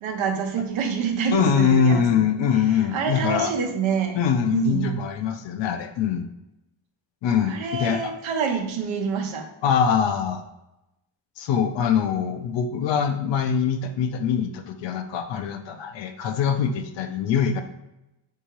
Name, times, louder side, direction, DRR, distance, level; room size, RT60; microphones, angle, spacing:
voice 1, 0.0-2.6 2.9-4.2 4.5-4.9 7.4-9.5, right 6 dB, 65° right, 3 dB, 0.9 m, -27 dB
voice 2, 1.3-3.5 4.1-6.3 7.2-8.1 9.6-10.4 11.4-17.6, left 7 dB, 60° left, 7 dB, 0.5 m, -23 dB
3.6 x 2.8 x 3.0 m, 0.93 s
cardioid pair, 100°, 50 cm